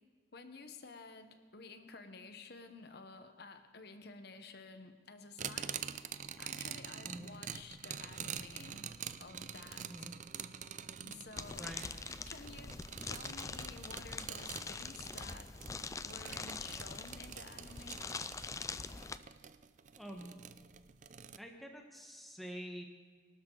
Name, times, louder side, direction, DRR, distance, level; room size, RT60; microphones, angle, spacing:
voice 1, 0.3-5.8 6.4-8.9 9.2-10.1 11.0-11.7 12.3-12.8 13.0-15.5 16.0-18.0, left 3 dB, 60° left, 8 dB, 1.2 m, -52 dB
sound 1, 5.4-21.4, right 8 dB, 40° right, 0.5 m, -46 dB
sound 2, 11.4-19.2, left 4 dB, 15° left, 0.4 m, -44 dB
voice 2, 11.6-11.9 20.0-20.3 21.4-22.8, equal, ahead, 2 dB, 1.3 m, -47 dB
24.0 x 12.5 x 4.0 m, 1.5 s
head